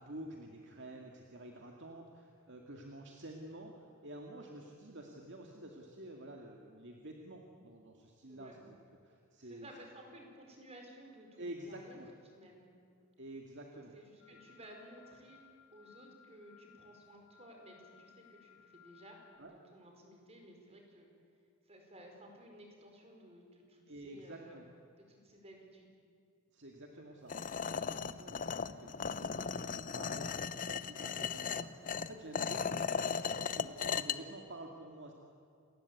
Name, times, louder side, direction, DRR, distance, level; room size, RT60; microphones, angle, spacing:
voice 1, 0.0-8.8 9.0-9.7 11.4-12.1 13.2-13.9 14.3-14.4 19.4-19.5 23.9-24.7 26.5-32.8 33.5-35.1, right 1 dB, 55° right, 1 dB, 2.2 m, -50 dB
voice 2, 9.4-12.0 12.3-12.7 13.9-15.4 15.7-19.2 19.5-21.1 21.6-24.5 25.0-25.9, right 1 dB, 30° right, 2 dB, 5.0 m, -56 dB
sound 1, 14.2-19.4, left 10 dB, 60° left, 7.4 m, -62 dB
sound 2, 27.3-34.2, left 6 dB, 40° left, 0.7 m, -37 dB
28.5 x 19.5 x 8.5 m, 2.3 s
head